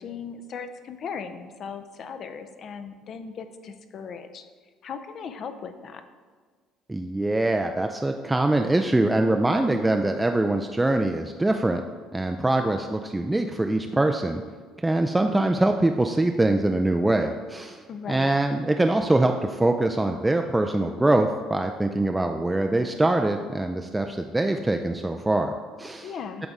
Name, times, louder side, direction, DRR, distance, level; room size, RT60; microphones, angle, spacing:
voice 1, 0.0-4.5 4.8-6.0 17.9-18.3 26.0-26.5, left 6 dB, 50° left, 8 dB, 0.5 m, -37 dB
voice 2, 6.9-11.8 12.1-14.4 14.8-26.1, right 2 dB, 10° right, 4 dB, 0.3 m, -23 dB
8.0 x 3.4 x 3.7 m, 1.5 s
supercardioid pair, 85°, 0 cm